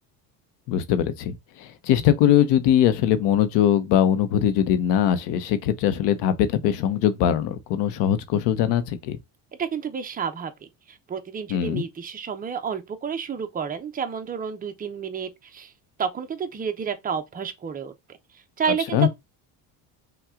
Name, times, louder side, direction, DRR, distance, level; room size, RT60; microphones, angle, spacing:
voice 1, 0.7-9.2 11.5-11.8 18.9-19.1, left 10 dB, 75° left, 0.9 m, -21 dB
voice 2, 9.6-15.7 16.0-17.9 18.6-19.1, right 7 dB, 20° right, 0.7 m, -30 dB
5.8 x 2.4 x 3.6 m
cardioid pair, 130°, 42 cm